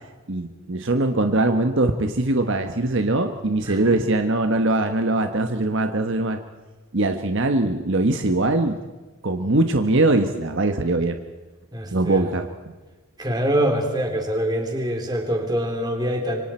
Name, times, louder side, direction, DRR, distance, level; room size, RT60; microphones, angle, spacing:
voice 1, 0.3-6.4 6.9-8.8 9.2-11.2 11.9-12.5, right 2 dB, 55° right, 7 dB, 1.2 m, -21 dB
voice 2, 3.6-4.0 11.7-12.2 13.2-16.4, equal, 20° right, 3 dB, 3.2 m, -24 dB
26.5 x 24.5 x 4.4 m, 1.2 s
head